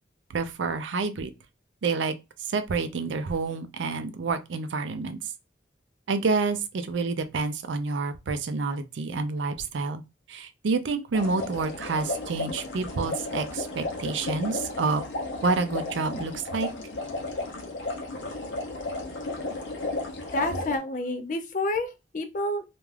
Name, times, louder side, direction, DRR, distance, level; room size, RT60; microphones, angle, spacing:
voice 1, 0.3-1.3 1.8-2.1 2.5-5.2 6.1-10.0 10.3-15.0 15.4-16.7, right 4 dB, 80° right, 0.4 m, -28 dB
sound 1, 11.1-20.8, left 2 dB, 80° left, 0.7 m, -34 dB
voice 2, 20.3-22.6, left 2 dB, 40° left, 0.4 m, -29 dB
2.4 x 2.3 x 3.2 m
head